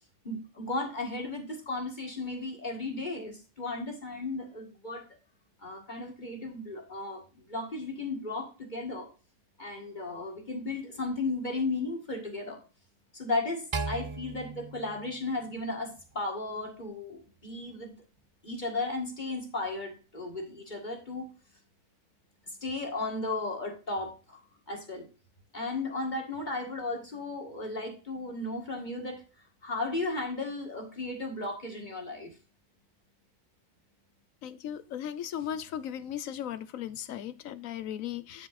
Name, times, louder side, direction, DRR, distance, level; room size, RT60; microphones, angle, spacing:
voice 1, 0.2-5.0 5.6-9.1 9.6-12.6 13.1-17.9 18.4-21.3 22.5-24.4 24.7-25.1 25.5-29.2 29.6-32.3, left 2 dB, 35° left, 2 dB, 1.9 m, -35 dB
sound 1, 13.7-16.1, right 4 dB, 35° right, 0.4 m, -37 dB
voice 2, 34.4-38.5, left 10 dB, 80° left, 14 dB, 1.1 m, -37 dB
9.2 x 5.1 x 4.2 m, 0.35 s
omnidirectional pair, 1.4 m